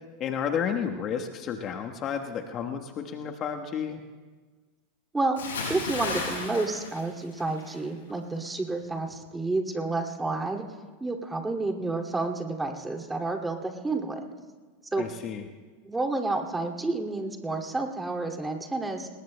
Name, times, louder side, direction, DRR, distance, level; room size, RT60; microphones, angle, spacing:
voice 1, 0.2-4.0 15.0-15.5, left 7 dB, 40° left, 3 dB, 1.2 m, -31 dB
Bathtub (filling or washing) / Splash splatter, 5.4-7.8 8.1-8.4, left 4 dB, 80° left, 6.4 m, -34 dB
voice 2, 5.7-10.6 11.0-14.2 14.9-15.1 15.8-19.1, right 3 dB, 10° right, 2 dB, 2.4 m, -30 dB
26.5 x 20.5 x 2.2 m, 1.4 s
hypercardioid pair, 90°, 0 cm